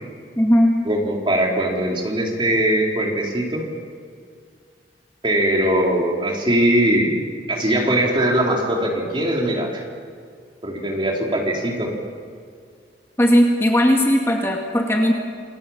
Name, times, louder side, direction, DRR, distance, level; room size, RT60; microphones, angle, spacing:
voice 1, 0.4-0.8 13.2-15.1, equal, 15° left, 0 dB, 2.0 m, -17 dB
voice 2, 0.9-3.7 5.2-7.1 7.5-9.8 10.6-11.9, right 1 dB, 30° right, -1 dB, 4.0 m, -21 dB
28.5 x 19.5 x 7.3 m, 2.1 s
head